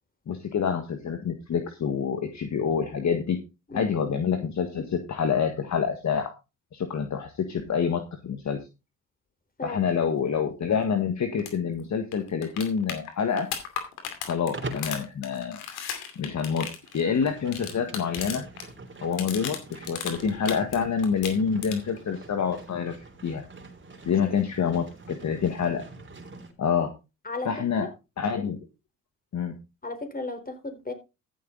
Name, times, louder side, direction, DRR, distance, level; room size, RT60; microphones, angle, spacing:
voice 1, 0.3-3.4 3.7-6.3 6.7-8.6 9.6-13.5 14.2-15.6 16.1-16.7 16.9-18.4 19.0-22.9 23.2-23.4 24.0-25.8 26.6-26.9 27.4-27.9 28.2-28.6 29.3-29.5, left 6 dB, 45° left, 1.7 m, -27 dB
sound 1, 11.4-11.5 11.8-11.9 12.1-18.7 18.9-20.8 21.0-22.0 24.0-24.1, left 8 dB, 80° left, 2.6 m, -36 dB
Livestock farm animals working animals, 14.5-15.0 16.7-26.5, right 2 dB, 30° right, 3.3 m, -44 dB
voice 2, 29.8-30.9, left 2 dB, 25° left, 4.1 m, -34 dB
14.0 x 7.4 x 3.9 m
hypercardioid pair, 55°, 38 cm